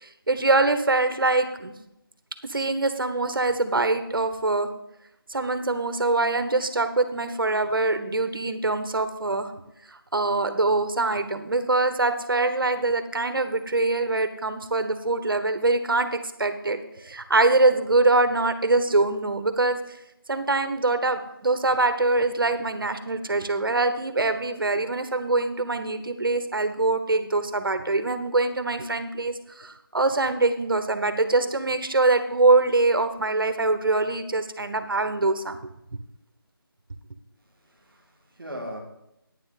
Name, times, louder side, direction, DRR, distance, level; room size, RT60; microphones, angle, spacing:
voice 1, 0.0-1.7 2.5-4.7 5.3-9.5 9.9-20.0 20.3-35.6, right 2 dB, 65° right, 9 dB, 1.1 m, -24 dB
voice 2, 37.4-38.8, equal, ahead, -23 dB, 0.4 m, -39 dB
9.7 x 9.7 x 4.1 m, 0.83 s
figure-of-eight pair, 170°, 13 cm